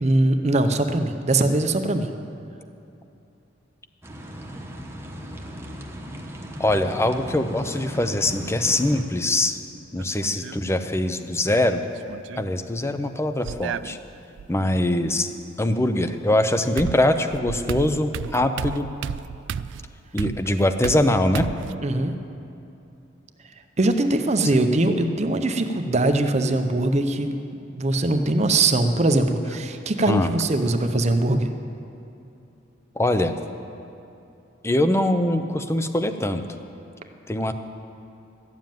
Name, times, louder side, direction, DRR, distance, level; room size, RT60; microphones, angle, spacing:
voice 1, 0.0-2.1 21.8-22.2 23.8-27.4 27.8-31.5, right 2 dB, 35° right, 7 dB, 0.7 m, -21 dB
sound 1, 4.0-9.0, equal, 15° right, 1.0 m, -37 dB
voice 2, 6.6-9.6 9.9-11.8 12.4-14.0 14.5-15.3 15.6-18.9 20.1-21.5 30.1-30.3 33.0-33.3 34.6-36.4 37.3-37.5, left 1 dB, 15° left, 8 dB, 0.6 m, -22 dB
sound 2, 10.0-10.6 11.9-12.5 13.4-14.5 16.2-16.3 16.8-21.8, right 7 dB, 70° right, 0.3 m, -33 dB
13.0 x 7.4 x 9.1 m, 2.8 s
head